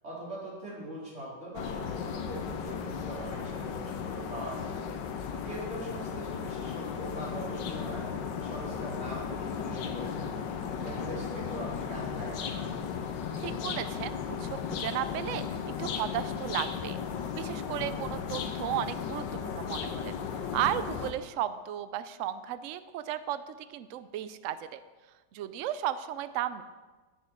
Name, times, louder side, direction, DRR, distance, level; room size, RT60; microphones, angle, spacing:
voice 1, 0.0-4.7 5.3-8.0 8.4-10.5 10.8-12.7, right 1 dB, 40° right, -6 dB, 3.9 m, -42 dB
sound 1, 1.5-21.1, left 7 dB, 85° left, 1.5 m, -35 dB
voice 2, 13.4-17.0 17.3-24.8 25.3-26.6, right 11 dB, 90° right, 13 dB, 0.6 m, -35 dB
10.5 x 9.6 x 4.5 m, 1.3 s
omnidirectional pair, 1.9 m